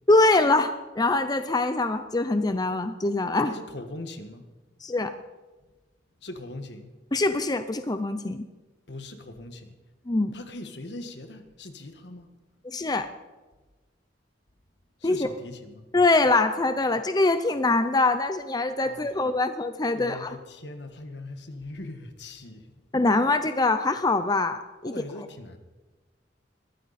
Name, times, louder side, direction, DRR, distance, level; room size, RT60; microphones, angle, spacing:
voice 1, 0.1-3.5 4.8-5.1 7.1-8.4 10.1-10.4 12.6-13.1 15.0-15.3 15.9-20.3 22.9-24.9, left 2 dB, 20° left, 9 dB, 0.6 m, -23 dB
voice 2, 3.4-4.4 6.2-6.9 8.9-9.8 10.3-12.3 15.0-15.9 18.8-19.2 19.9-22.8 24.8-25.6, left 2 dB, 65° left, 7 dB, 1.6 m, -40 dB
21.5 x 14.5 x 4.3 m, 1.2 s
head